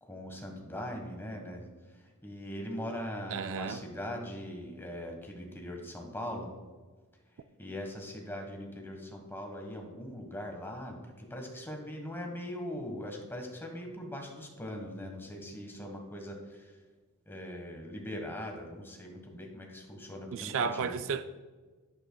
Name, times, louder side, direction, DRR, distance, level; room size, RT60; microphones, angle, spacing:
voice 1, 0.0-1.7 1.9-6.5 7.6-16.7 17.3-21.0, left 1 dB, 10° left, 1.4 m, -41 dB
voice 2, 3.3-3.8 20.3-21.2, right 6 dB, 60° right, 0.4 m, -32 dB
11.0 x 8.8 x 2.3 m
head